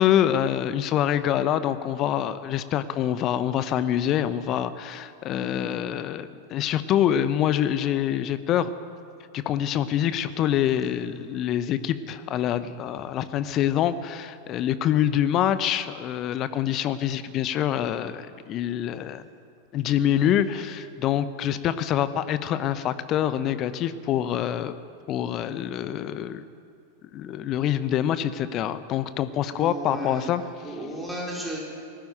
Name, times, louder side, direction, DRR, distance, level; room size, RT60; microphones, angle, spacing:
voice 1, 0.0-8.8 9.3-19.3 19.7-24.8 25.1-26.4 27.1-30.8, left 10 dB, 35° left, 13 dB, 0.9 m, -25 dB
voice 2, 29.5-30.3 30.6-31.6, right 1 dB, 5° right, -3 dB, 4.5 m, -34 dB
19.0 x 16.5 x 9.2 m, 2.4 s
figure-of-eight pair, 90°, 0 cm